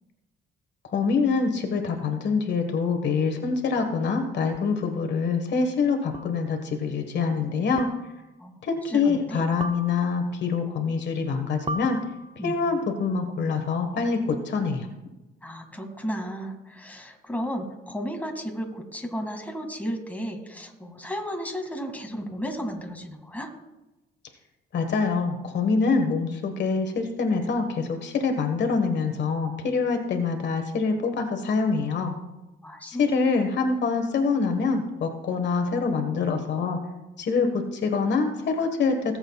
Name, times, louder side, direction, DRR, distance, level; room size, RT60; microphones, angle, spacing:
voice 1, 0.9-7.9 8.6-12.0 12.4-14.9 24.7-32.1 32.9-36.8 37.2-39.2, left 4 dB, 60° left, 5 dB, 1.5 m, -25 dB
sound 1, 4.5-4.6 6.1-6.5 7.8-8.3 9.6-10.4 11.7-12.6, right 2 dB, 30° right, 0.6 m, -37 dB
voice 2, 8.4-9.4 12.4-12.5 15.4-23.5 32.6-33.1, equal, 10° left, 3 dB, 2.2 m, -34 dB
18.5 x 7.9 x 2.4 m, 1.0 s
cardioid pair, 90°, 20 cm